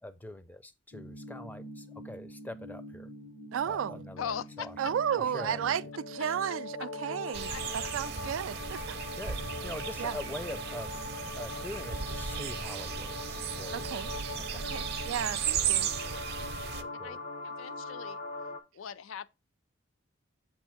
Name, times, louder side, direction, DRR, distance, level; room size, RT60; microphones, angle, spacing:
voice 1, 0.0-3.1 3.6-4.8 5.2-5.9 6.2-6.4 7.3-7.4 9.2-10.9 11.4-13.9 14.4-14.7 16.8-17.2, left 1 dB, 10° left, 0.5 m, -44 dB
sound 1, 0.9-18.6, left 2 dB, 65° left, 1.0 m, -42 dB
voice 2, 3.5-4.0 4.8-5.8 6.1-8.8 10.0-10.1 13.7-14.1 14.7-15.9, right 8 dB, 90° right, 0.3 m, -33 dB
voice 3, 4.2-4.9 7.5-7.6 17.0-17.2 17.4-18.2 18.7-19.3, left 8 dB, 90° left, 0.4 m, -40 dB
sound 2, 7.3-16.8, right 8 dB, 55° right, 0.6 m, -35 dB
7.3 x 2.6 x 5.6 m
head